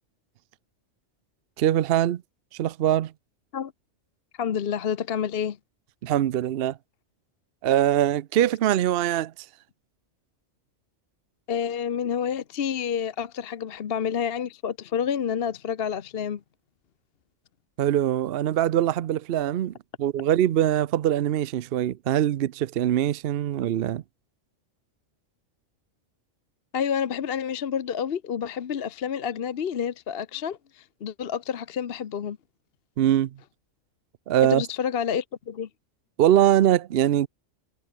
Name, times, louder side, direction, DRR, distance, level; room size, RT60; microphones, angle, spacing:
voice 1, 1.6-2.2 2.5-3.1 6.0-6.8 7.6-9.3 17.8-19.7 20.0-24.0 33.0-33.3 34.3-34.6 36.2-37.3, right 11 dB, 60° right, 0.7 m, -22 dB
voice 2, 4.4-5.6 11.5-16.4 26.7-32.4 34.5-35.7, left 8 dB, 55° left, 1.0 m, -29 dB
omnidirectional pair, 1.3 m